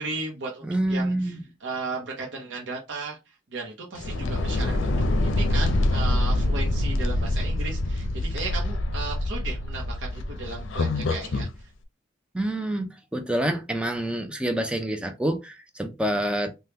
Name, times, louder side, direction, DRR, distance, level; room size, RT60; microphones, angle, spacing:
voice 1, 0.0-11.7, right 3 dB, 70° right, 0.7 m, -35 dB
voice 2, 0.6-1.4 12.3-16.5, right 1 dB, 5° right, 0.5 m, -27 dB
sound 1, 3.9-11.5, left 1 dB, 80° left, 0.5 m, -25 dB
3.5 x 2.2 x 2.8 m
head